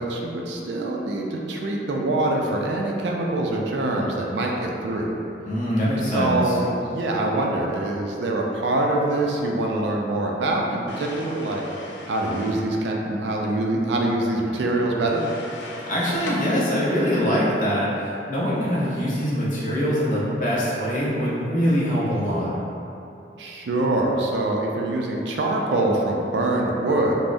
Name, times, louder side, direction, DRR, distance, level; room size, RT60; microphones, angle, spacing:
voice 1, 0.0-5.1 6.1-11.6 12.1-15.2 23.4-27.1, right 2 dB, 75° right, 0 dB, 0.4 m, -24 dB
voice 2, 5.4-6.6 15.6-22.6, equal, 45° left, -8 dB, 0.7 m, -23 dB
sound 1, 10.9-12.7 15.1-16.4, left 2 dB, 80° left, 0.4 m, -38 dB
3.4 x 2.0 x 2.5 m, 2.8 s
head